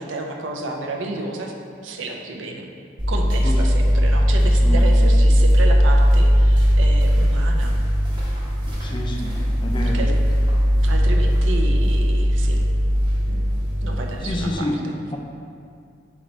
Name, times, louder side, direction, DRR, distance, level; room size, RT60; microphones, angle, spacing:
voice 1, 0.0-1.5 1.8-2.7 3.1-7.7 9.8-10.1 10.8-12.6 13.3-13.5 13.8-14.9, right 2 dB, 85° right, 2 dB, 0.5 m, -31 dB
sound 1, 3.0-14.6, equal, 25° right, 0.8 m, -18 dB
voice 2, 8.8-9.3 9.6-10.0 14.2-14.8 15.1-15.2, left 1 dB, 25° left, 1 dB, 0.4 m, -28 dB
4.2 x 3.2 x 3.8 m, 2.3 s
head